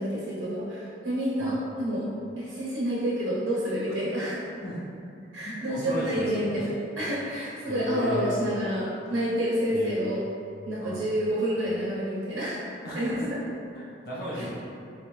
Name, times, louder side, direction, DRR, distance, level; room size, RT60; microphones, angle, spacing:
voice 1, 0.0-2.1 2.4-4.5 5.3-10.2 10.7-13.4 14.3-14.5, equal, 85° right, -7 dB, 0.5 m, -29 dB
voice 2, 5.4-6.6 7.7-8.4 9.7-10.1 10.8-11.0 12.8-13.1 13.7-14.5, equal, 55° left, -7 dB, 0.5 m, -35 dB
3.4 x 2.0 x 3.1 m, 2.5 s
head